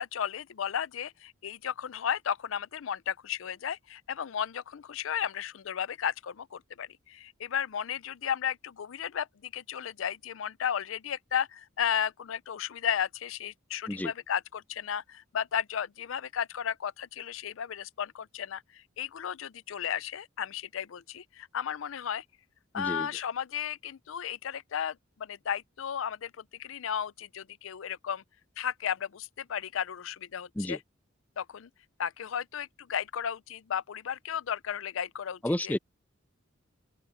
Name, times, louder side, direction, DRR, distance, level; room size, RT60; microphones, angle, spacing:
voice 1, 0.0-22.2 22.7-28.2 28.6-30.8 31.4-31.7 32.0-35.7, left 8 dB, 70° left, 0.5 m, -34 dB
voice 2, 22.7-23.1 30.6-30.8 35.4-35.8, left 1 dB, 10° left, 0.4 m, -31 dB
open air
head